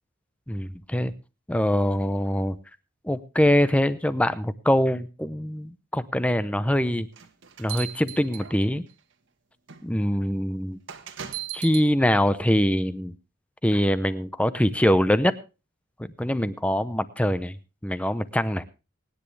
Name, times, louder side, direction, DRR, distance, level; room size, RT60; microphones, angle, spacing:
voice 1, 0.5-1.1 1.5-2.6 3.0-7.1 7.6-8.8 9.8-10.8 11.5-13.1 13.6-15.3 16.0-17.6 17.8-18.6, equal, 5° left, 14 dB, 0.7 m, -23 dB
sound 1, 7.1-8.9 9.7-9.8 10.9-11.9, right 11 dB, 60° right, 1.5 m, -37 dB
24.0 x 10.0 x 3.3 m, 0.31 s
head